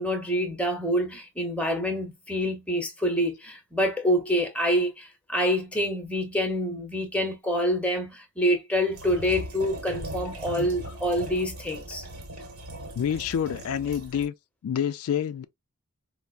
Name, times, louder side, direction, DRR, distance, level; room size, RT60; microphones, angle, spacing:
voice 1, 0.0-12.1, equal, 5° left, 0.7 m, -26 dB
sound 1, 8.9-14.3, right 1 dB, 75° right, 1.0 m, -39 dB
voice 2, 13.0-14.3 14.6-15.4, left 8 dB, 75° left, 0.3 m, -28 dB
4.4 x 2.0 x 2.4 m
head